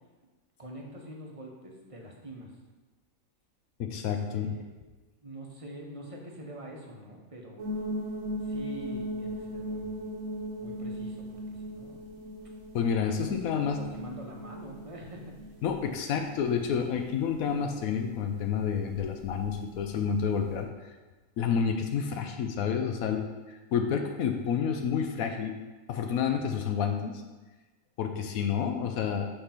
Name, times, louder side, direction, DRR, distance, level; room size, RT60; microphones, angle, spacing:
voice 1, 0.6-2.5 4.0-4.6 5.2-7.6 8.3-10.0 10.6-12.0 13.1-15.3, right 1 dB, 25° right, -1 dB, 1.0 m, -45 dB
voice 2, 3.8-4.5 12.7-13.8 15.6-20.7 21.4-23.2 23.7-25.5 25.9-27.2 28.0-29.3, left 7 dB, 85° left, 5 dB, 1.0 m, -29 dB
sound 1, 7.6-20.6, equal, 75° right, 1.5 m, -39 dB
7.3 x 3.3 x 5.7 m, 1.2 s
omnidirectional pair, 1.4 m